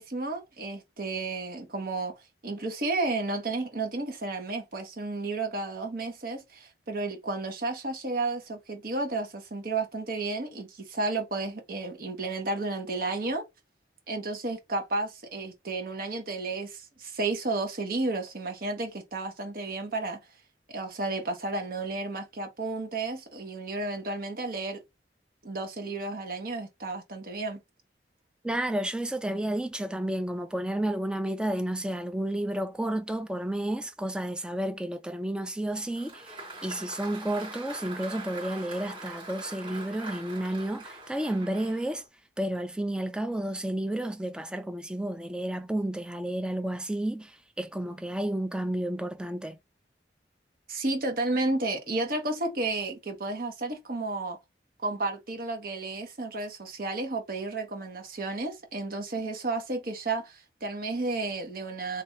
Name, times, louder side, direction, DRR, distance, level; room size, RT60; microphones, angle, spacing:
voice 1, 0.0-2.1 2.4-13.4 14.1-20.2 20.7-24.8 25.4-27.6 50.7-54.4 54.8-62.0, right 2 dB, 55° right, 1.0 m, -32 dB
voice 2, 28.4-42.0 42.4-49.6, right 1 dB, 5° right, 0.3 m, -31 dB
Applause, 35.7-42.1, right 2 dB, 30° right, 2.0 m, -43 dB
3.3 x 2.6 x 2.7 m
head